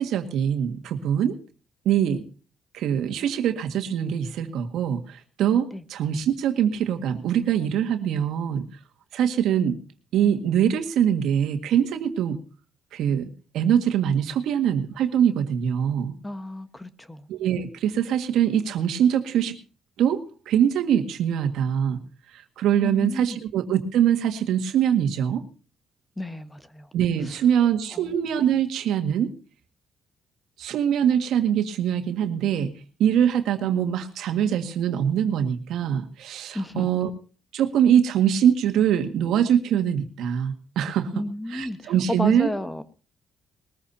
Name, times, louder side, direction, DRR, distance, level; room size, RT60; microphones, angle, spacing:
voice 1, 0.0-1.4 1.8-2.2 2.7-8.7 9.1-9.8 10.1-12.4 12.9-13.3 13.5-16.1 17.3-19.5 20.0-22.0 22.3-25.4 26.9-29.3 30.6-32.7 33.0-37.1 37.5-41.2 41.5-42.5, right 9 dB, 85° right, 6 dB, 1.8 m, -23 dB
voice 2, 16.2-17.3 22.8-23.4 26.2-26.9 27.9-28.1 36.5-36.9 41.1-42.8, left 1 dB, 15° left, 11 dB, 1.2 m, -32 dB
21.0 x 14.5 x 2.8 m, 0.35 s
cardioid pair, 90°, 0 cm